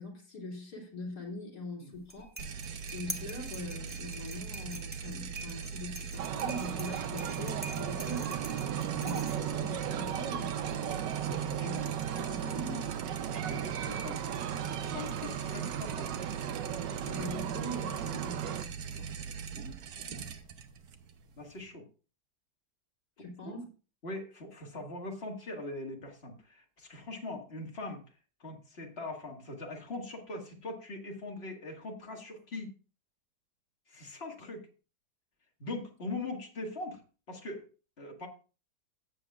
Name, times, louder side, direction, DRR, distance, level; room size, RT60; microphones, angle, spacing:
voice 1, 0.0-2.3 2.9-8.3 9.0-11.0 11.3-11.8 12.2-12.9 17.1-18.6 18.9-19.1 23.2-23.7, left 1 dB, 65° left, 0 dB, 3.4 m, -42 dB
sound 1, 2.0-9.7, right 1 dB, 10° right, 0.8 m, -45 dB
sound 2, 2.4-21.7, right 6 dB, 65° right, 1.4 m, -41 dB
sound 3, 6.2-18.7, right 10 dB, 90° right, 1.4 m, -36 dB
voice 2, 13.3-14.5 14.8-16.1 20.1-20.3 21.4-21.9 23.4-23.5 24.0-28.0 28.4-32.7 33.9-34.6 35.6-37.0 37.3-37.6 38.0-38.3, left 2 dB, 35° left, 2 dB, 2.1 m, -41 dB
15.5 x 7.8 x 2.4 m, 0.35 s
omnidirectional pair, 1.9 m